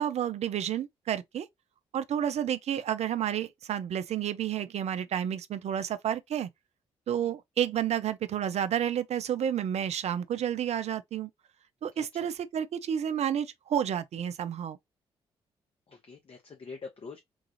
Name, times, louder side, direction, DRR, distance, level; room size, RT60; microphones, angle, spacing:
voice 1, 0.0-1.5 1.9-6.5 7.1-11.3 11.8-14.8, right 9 dB, 60° right, 0.5 m, -30 dB
voice 2, 11.9-12.3 15.9-17.2, left 4 dB, 45° left, 0.9 m, -45 dB
3.8 x 2.4 x 2.9 m
hypercardioid pair, 40°, 13 cm